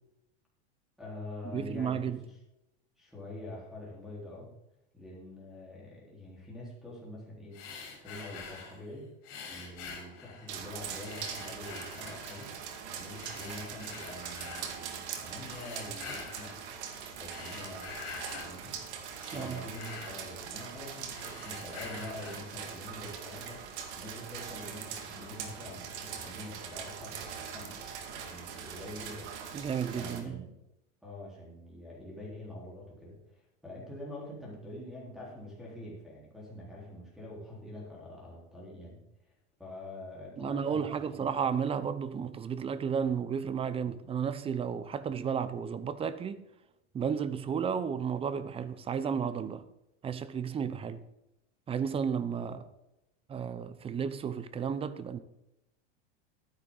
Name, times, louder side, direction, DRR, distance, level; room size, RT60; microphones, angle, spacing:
voice 1, 1.0-2.4 3.0-4.5 4.9-7.6 8.0-9.1 9.5-12.5 13.0-16.6 17.2-18.0 18.4-18.8 19.3-23.6 23.9-29.3 29.9-30.5 31.0-39.3 39.6-41.3 52.5-52.6, left 1 dB, ahead, 4.0 m, -45 dB
voice 2, 1.5-2.2 19.3-19.6 29.5-30.4 40.4-46.4 46.9-49.6 50.0-51.0 51.7-52.6 53.3-55.2, right 7 dB, 15° right, 0.6 m, -33 dB
sound 1, 7.5-8.8 9.2-10.6 11.0-12.6 13.1-14.7 15.4-16.6 17.1-18.5 18.9-20.8 21.1-22.5, left 5 dB, 45° left, 4.5 m, -46 dB
sound 2, 10.5-30.2, right 7 dB, 90° right, 2.0 m, -42 dB
12.0 x 9.9 x 3.9 m
supercardioid pair, 140°, 33 cm